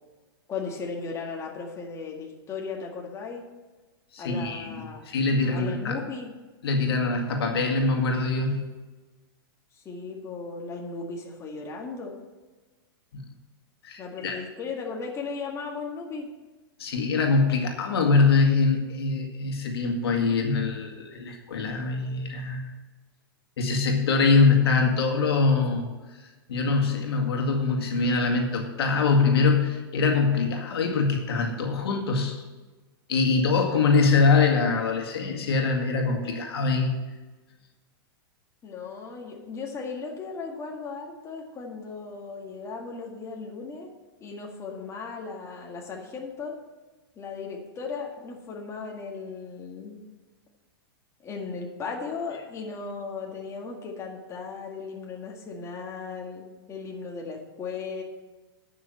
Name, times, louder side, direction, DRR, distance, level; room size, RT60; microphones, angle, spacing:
voice 1, 0.5-3.4 4.2-5.0 5.5-6.3 9.7-12.2 14.0-16.3 38.6-43.9 44.2-46.5 47.2-50.0 51.2-58.0, left 4 dB, 20° left, -1 dB, 1.9 m, -36 dB
voice 2, 4.1-6.0 6.6-8.6 13.1-13.2 13.8-14.4 16.8-22.7 23.6-25.9 26.5-32.4 33.1-36.9, left 4 dB, 80° left, 2 dB, 2.1 m, -23 dB
10.0 x 6.1 x 7.5 m, 1.2 s
hypercardioid pair, 125°, 13 cm